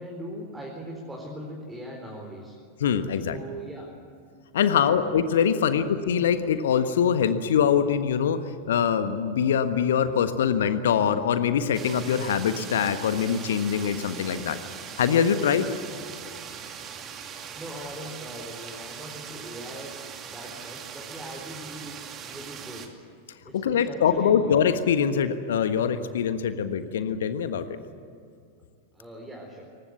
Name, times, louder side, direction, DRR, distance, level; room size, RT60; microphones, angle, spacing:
voice 1, 0.0-2.5 3.3-4.1 4.9-5.0 5.6-5.9 16.2-16.6 17.5-19.9 20.3-22.9 23.4-24.5 28.9-29.7, right 1 dB, 10° right, -2 dB, 4.5 m, -40 dB
voice 2, 2.8-3.4 4.5-8.4 8.7-14.6 15.0-15.7 23.5-27.8, left 8 dB, 60° left, 10 dB, 1.4 m, -23 dB
sound 1, 11.7-22.9, right 7 dB, 30° right, 2.4 m, -40 dB
23.0 x 20.0 x 8.2 m, 2.4 s
figure-of-eight pair, 90°, 0 cm